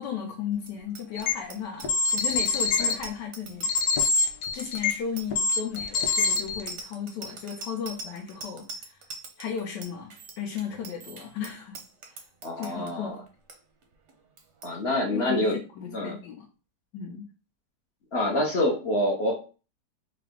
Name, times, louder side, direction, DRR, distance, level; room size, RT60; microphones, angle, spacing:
voice 1, 0.0-3.7 4.5-9.0 9.4-11.8 12.1-12.2 12.6-13.2 15.1-16.5 16.9-17.3, left 7 dB, 85° left, 0 dB, 1.3 m, -35 dB
Bicycle bell, 0.6-12.9 13.3-13.6 13.8-14.1 14.4-14.7, right 3 dB, 60° right, 0.7 m, -43 dB
sound 1, 1.2-1.3 1.8-2.9 3.6-5.0 5.3-6.7, left 4 dB, 70° left, 1.1 m, -24 dB
voice 2, 12.4-13.1 14.6-15.6 15.9-16.1 18.1-19.6, left 1 dB, 50° left, -1 dB, 0.8 m, -26 dB
3.7 x 2.5 x 3.4 m, 0.35 s
omnidirectional pair, 1.8 m